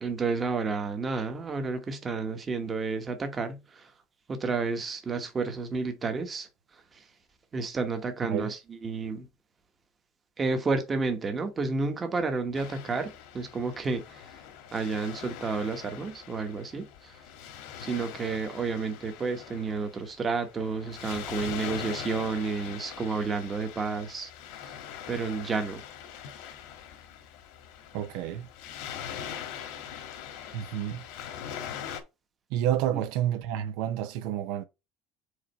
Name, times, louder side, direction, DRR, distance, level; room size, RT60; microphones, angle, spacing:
voice 1, 0.0-3.9 4.3-6.5 6.9-7.0 7.5-9.3 10.4-14.3 14.7-17.2 17.8-24.3 24.6-24.7 25.1-25.8, right 4 dB, 20° right, 1.1 m, -31 dB
Waves surf, 12.5-32.0, left 9 dB, 75° left, 1.5 m, -42 dB
voice 2, 27.9-28.4 30.5-31.0 32.5-34.7, right 11 dB, 70° right, 0.7 m, -29 dB
5.0 x 4.1 x 5.2 m
cardioid pair, 165°, 0 cm